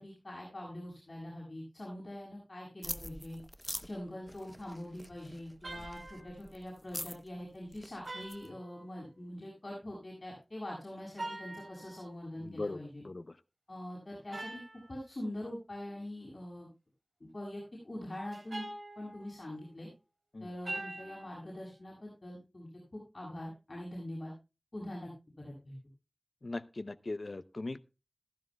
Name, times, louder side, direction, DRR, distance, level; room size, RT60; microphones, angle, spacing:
voice 1, 0.0-3.4 3.8-13.0 13.7-14.6 14.9-16.7 17.2-18.6 18.9-19.9 20.4-24.3 24.7-25.1 25.4-25.7, left 1 dB, 60° left, -5 dB, 6.5 m, -43 dB
sound 1, 2.8-8.5, equal, 15° left, 0.8 m, -45 dB
sound 2, 5.6-6.4 8.1-9.2 11.1-12.1 14.3-14.9 18.3-19.6 20.7-21.4, right 2 dB, 75° right, 3.2 m, -44 dB
voice 2, 12.4-12.8 13.0-13.2 20.3-20.5 26.4-27.8, left 2 dB, 75° left, 14 dB, 0.6 m, -39 dB
15.0 x 14.5 x 2.3 m, 0.29 s
wide cardioid pair, 55°, 0 cm